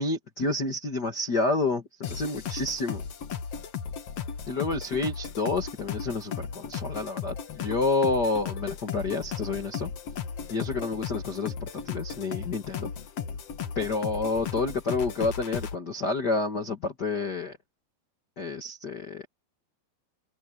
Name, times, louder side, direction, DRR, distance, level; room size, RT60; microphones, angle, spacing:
voice 1, 0.0-3.0 4.5-9.9 10.5-12.9 13.7-17.6 18.4-19.3, left 3 dB, 75° left, 0.9 m, -29 dB
sound 1, 2.0-15.7, left 7 dB, 55° left, 1.8 m, -36 dB
omnidirectional pair, 5.0 m